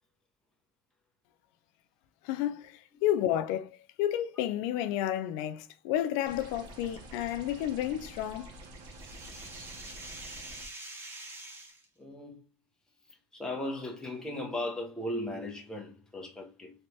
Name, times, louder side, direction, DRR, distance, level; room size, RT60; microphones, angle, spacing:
voice 1, 2.2-8.5, left 12 dB, 85° left, 0.4 m, -31 dB
sound 1, 6.3-10.7, right 1 dB, 65° right, 0.9 m, -48 dB
sound 2, 8.1-11.8, right 2 dB, 30° right, 1.4 m, -46 dB
voice 2, 12.0-12.4 13.3-16.7, left 1 dB, 10° left, 1.0 m, -37 dB
3.2 x 3.1 x 2.8 m
cardioid pair, 110°, 8 cm